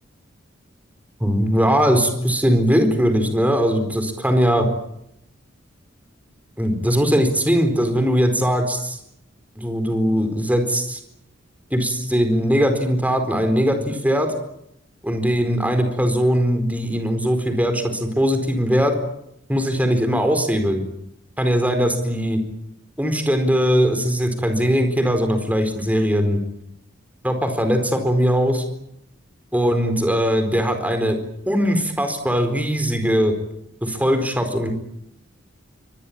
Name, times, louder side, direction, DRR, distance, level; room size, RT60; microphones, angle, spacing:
voice 1, 1.2-4.7 6.6-9.0 9.6-11.0 11.7-14.3 15.0-18.9 19.5-20.8 21.4-22.4 23.0-26.4 27.2-28.6 29.5-31.2 31.5-33.3 33.8-34.7, equal, 10° right, 7 dB, 4.4 m, -20 dB
25.0 x 20.5 x 8.8 m, 0.78 s
head